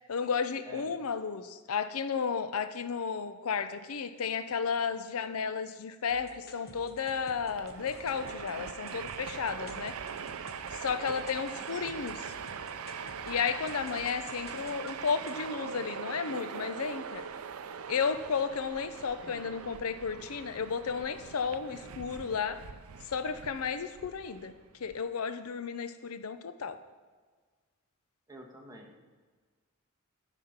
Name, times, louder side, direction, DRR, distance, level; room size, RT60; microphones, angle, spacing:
voice 1, 0.1-10.0 10.7-12.2 13.3-17.2 17.9-22.6 23.0-24.5 24.8-26.8, left 6 dB, 90° left, 11 dB, 0.6 m, -33 dB
voice 2, 0.7-1.0 11.5-12.1 19.2-19.5 28.3-29.0, right 1 dB, 15° right, 1 dB, 1.3 m, -50 dB
sound 1, 6.1-15.4, left 1 dB, 50° left, 1.0 m, -51 dB
Train, 7.4-25.0, right 7 dB, 80° right, 0.5 m, -42 dB
12.5 x 5.0 x 5.7 m, 1.5 s
head